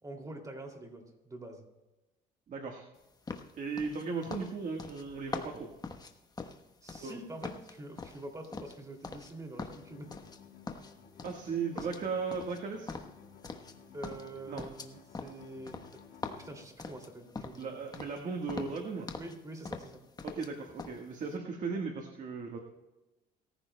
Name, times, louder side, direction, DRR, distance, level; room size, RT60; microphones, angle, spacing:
voice 1, 0.0-1.7 6.8-10.1 11.7-11.9 13.9-16.0 16.4-17.7 19.1-20.0, right 1 dB, 20° right, 3 dB, 2.5 m, -45 dB
voice 2, 2.5-2.8 3.6-5.7 7.0-7.2 11.2-12.9 14.5-14.6 17.6-19.1 20.2-22.6, right 5 dB, 50° right, 2 dB, 1.5 m, -36 dB
sound 1, 3.3-7.2 7.4-9.3 9.6-10.4 10.7-11.5 11.8-13.8 14.0-17.7 17.9-18.2 18.5-19.4 19.6-20.5 20.8-21.0, left 4 dB, 25° left, 1.0 m, -43 dB
sound 2, 9.6-16.6, left 7 dB, 70° left, 3.4 m, -56 dB
22.0 x 14.5 x 2.2 m, 1.0 s
cardioid pair, 110°, 17 cm